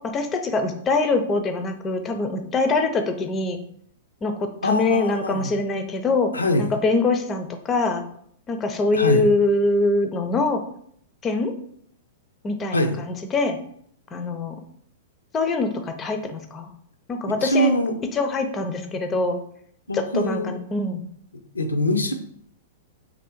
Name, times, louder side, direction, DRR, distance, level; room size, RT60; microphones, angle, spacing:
voice 1, 0.0-3.6 4.2-6.3 6.6-8.0 8.5-10.6 11.2-11.5 12.4-13.6 14.1-14.6 15.3-16.7 17.1-17.7 18.1-19.4 19.9-21.0, left 3 dB, 20° left, 7 dB, 0.4 m, -23 dB
voice 2, 4.6-5.5 6.3-6.7 8.9-9.2 12.7-13.0 17.3-18.0 19.9-20.5 21.3-22.1, left 1 dB, 80° left, 5 dB, 0.4 m, -23 dB
3.0 x 2.6 x 4.4 m, 0.67 s
figure-of-eight pair, 100°, 0 cm